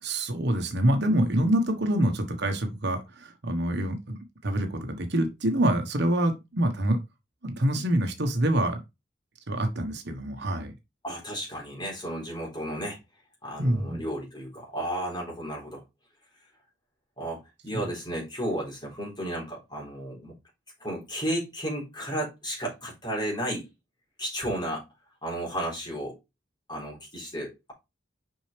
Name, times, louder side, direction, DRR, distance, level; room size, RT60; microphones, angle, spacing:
voice 1, 0.0-4.2 4.4-7.0 7.4-8.8 9.5-10.7 13.6-14.0 17.7-17.8, right 1 dB, 60° right, 1.3 m, -26 dB
voice 2, 11.0-13.0 13.4-15.8 17.2-20.4 20.8-23.7 24.2-24.8 25.2-26.2 26.7-27.7, equal, 25° left, 3.9 m, -33 dB
6.4 x 5.6 x 3.4 m
head